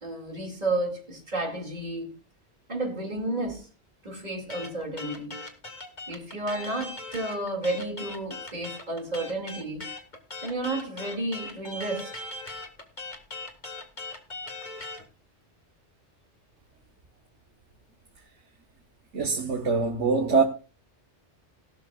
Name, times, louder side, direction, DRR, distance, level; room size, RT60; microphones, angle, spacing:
voice 1, 0.0-2.2 2.7-3.7 4.0-5.5 6.1-9.9 10.4-12.1, right 2 dB, 35° right, 2.6 m, -32 dB
sound 1, 4.5-15.0, left 2 dB, 40° left, 2.0 m, -39 dB
voice 2, 19.1-20.4, right 4 dB, 90° right, 1.6 m, -23 dB
17.5 x 12.0 x 2.4 m
omnidirectional pair, 1.2 m